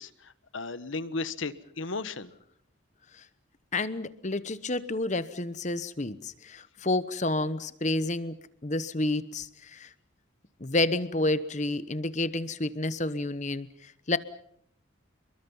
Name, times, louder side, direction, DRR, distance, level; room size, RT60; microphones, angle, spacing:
voice 1, 0.0-2.3, left 3 dB, 70° left, 14 dB, 1.3 m, -35 dB
voice 2, 3.7-8.3 8.6-9.9 10.6-14.2, left 2 dB, 35° left, 14 dB, 1.0 m, -30 dB
30.0 x 22.5 x 5.6 m, 0.70 s
head